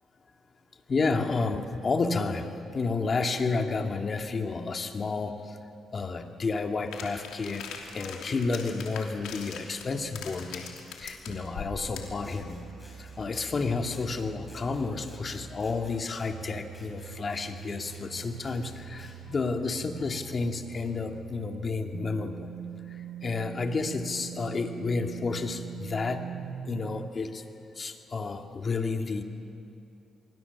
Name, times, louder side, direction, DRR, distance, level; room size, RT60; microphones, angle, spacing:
voice 1, 0.9-5.6 5.9-7.7 7.9-12.6 13.0-22.6 22.9-26.3 26.7-27.4 27.8-29.2, left 4 dB, 40° left, 4 dB, 2.0 m, -31 dB
sound 1, 6.9-12.2, left 6 dB, 85° left, 3.1 m, -42 dB
sound 2, 11.3-27.1, right 10 dB, 65° right, 0.8 m, -44 dB
Scissors, 12.2-19.2, left 2 dB, 20° left, 6.8 m, -55 dB
25.5 x 23.0 x 7.1 m, 2.6 s
cardioid pair, 90°, 0 cm